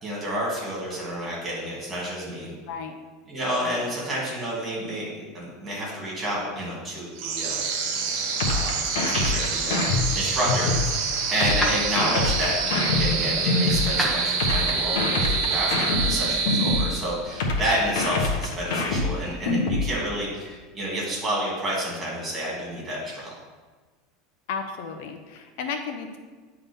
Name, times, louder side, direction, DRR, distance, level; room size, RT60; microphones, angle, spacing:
voice 1, 0.0-2.5 3.3-7.6 8.5-8.8 9.1-9.9 10.1-23.3, equal, 15° right, -5 dB, 2.7 m, -30 dB
voice 2, 2.7-3.0 11.4-11.5 24.5-26.2, left 5 dB, 65° left, 6 dB, 0.7 m, -33 dB
sound 1, 7.2-17.4, right 5 dB, 60° right, 1.2 m, -27 dB
sound 2, 8.4-10.9 11.4-13.9 14.4-16.9 17.4-19.9, left 3 dB, 90° left, 1.3 m, -25 dB
sound 3, 9.8-14.8, right 1 dB, 5° left, 1.3 m, -35 dB
9.6 x 3.9 x 5.4 m, 1.3 s
supercardioid pair, 160°, 0 cm